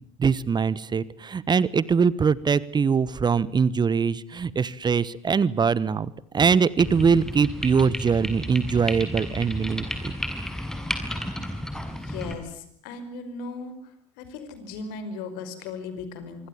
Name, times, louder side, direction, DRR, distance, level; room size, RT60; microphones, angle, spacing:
voice 1, 0.0-10.1, right 6 dB, 25° right, 20 dB, 1.2 m, -22 dB
sound 1, 6.8-12.3, left 1 dB, 5° left, 6.1 m, -32 dB
voice 2, 11.8-13.8 14.2-16.5, left 4 dB, 60° left, 11 dB, 5.3 m, -37 dB
25.5 x 24.5 x 7.2 m, 0.69 s
figure-of-eight pair, 65°, 17 cm